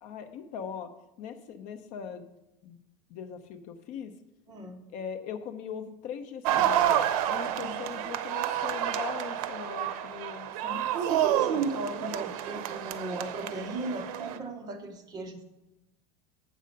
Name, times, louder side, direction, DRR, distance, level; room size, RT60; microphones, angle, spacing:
voice 1, 0.0-0.9 1.2-2.3 2.6-2.8 3.1-4.1 4.9-6.9 7.3-10.9, left 7 dB, 45° left, 8 dB, 0.7 m, -40 dB
voice 2, 4.5-4.8 7.6-7.8 10.6-15.4, right 3 dB, 20° right, 4 dB, 0.8 m, -35 dB
sound 1, 6.4-14.4, right 11 dB, 70° right, 0.7 m, -29 dB
7.7 x 6.6 x 5.2 m, 0.92 s
cardioid pair, 165°, 19 cm